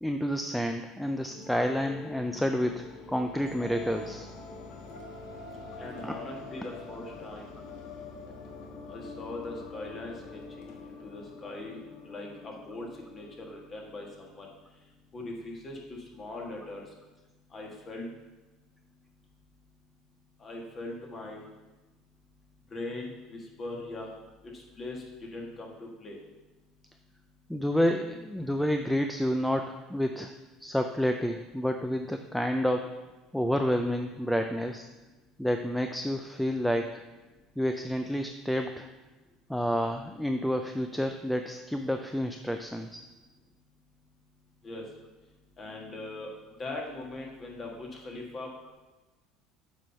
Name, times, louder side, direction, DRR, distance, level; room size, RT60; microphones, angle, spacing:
voice 1, 0.0-4.3 6.0-6.1 27.5-30.3 30.6-32.9 33.3-34.9 35.4-37.0 37.6-38.9 39.5-43.0, equal, ahead, 5 dB, 0.4 m, -29 dB
sound 1, 1.2-14.2, left 3 dB, 75° left, 1.3 m, -45 dB
voice 2, 5.8-7.5 8.9-16.9 17.5-18.1 20.4-21.5 22.7-24.2 24.4-26.2 44.6-44.9 45.6-48.7, left 2 dB, 30° left, -1 dB, 1.7 m, -41 dB
7.7 x 4.4 x 5.5 m, 1.2 s
cardioid pair, 135°, 0 cm